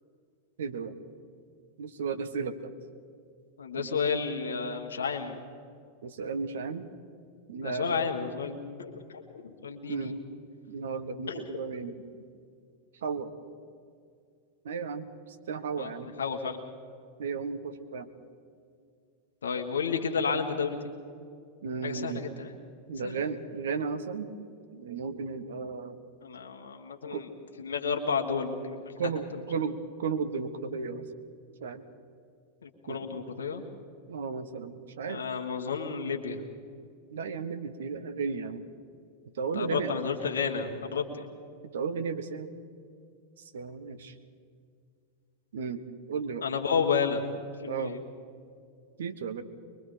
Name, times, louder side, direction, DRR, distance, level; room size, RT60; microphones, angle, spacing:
voice 1, 0.6-1.0 1.8-2.7 3.8-3.9 6.0-6.9 7.5-8.1 9.9-10.2 10.7-11.9 13.0-13.3 14.6-16.1 17.2-18.1 21.6-22.2 22.9-24.3 24.7-26.0 27.1-27.3 29.0-31.1 31.6-31.8 32.9-33.3 34.1-35.3 37.1-38.7 39.3-39.9 41.7-42.5 43.4-44.1 45.5-46.4 47.7-48.0 49.0-49.4, right 5 dB, 60° right, 11 dB, 1.3 m, -34 dB
voice 2, 3.6-5.4 7.6-10.1 11.3-11.4 15.8-15.9 16.2-16.6 19.4-20.8 21.8-22.5 23.0-23.1 26.2-27.3 27.6-28.9 32.6-33.6 35.0-36.5 39.5-41.3 46.4-47.2 47.6-48.0, left 5 dB, 70° left, 3 dB, 1.5 m, -31 dB
23.0 x 23.0 x 5.1 m, 2.3 s
figure-of-eight pair, 90°, 0 cm